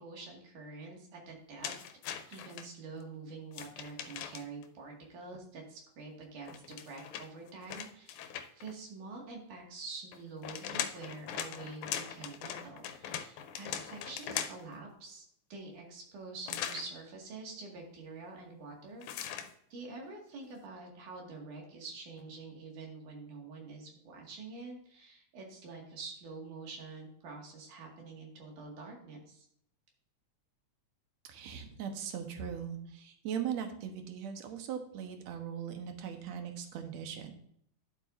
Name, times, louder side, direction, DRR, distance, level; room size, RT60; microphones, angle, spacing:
voice 1, 0.0-1.7 2.3-15.3 15.5-29.5, right 3 dB, 90° right, 0 dB, 3.7 m, -47 dB
sound 1, 1.6-2.7 3.5-4.7 6.5-8.7 10.1-14.8 16.5-16.9 19.0-19.5, left 9 dB, 80° left, 2.2 m, -40 dB
voice 2, 31.3-37.3, right 8 dB, 70° right, 5 dB, 2.3 m, -39 dB
11.5 x 8.0 x 2.6 m, 0.68 s
omnidirectional pair, 3.5 m